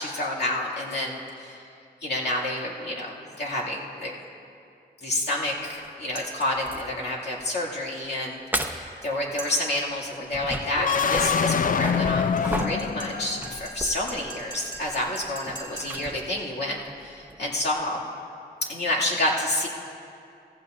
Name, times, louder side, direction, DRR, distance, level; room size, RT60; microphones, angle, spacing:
voice 1, 0.0-1.6 2.0-4.2 5.0-18.1 18.7-19.7, left 1 dB, 70° left, -5 dB, 2.3 m, -29 dB
sound 1, 5.8-5.9 6.4-7.0 7.4-7.6 8.0-8.1 8.5-9.0 9.8-17.9, right 1 dB, 10° right, 0.8 m, -36 dB
sound 2, 6.1-6.6 9.4-9.9 12.4-16.2, right 2 dB, 25° left, 2.5 m, -41 dB
sound 3, 10.7-13.7, left 6 dB, 50° left, 0.4 m, -25 dB
16.5 x 15.0 x 2.5 m, 2.5 s
cardioid pair, 70°, 18 cm